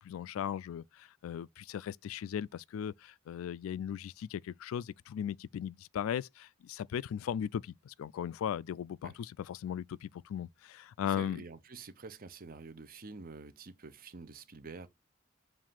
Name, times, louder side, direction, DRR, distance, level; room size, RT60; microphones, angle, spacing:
voice 1, 0.0-11.4, left 9 dB, 85° left, 0.3 m, -37 dB
voice 2, 11.1-14.9, right 4 dB, 45° right, 0.7 m, -48 dB
7.3 x 2.6 x 5.7 m
head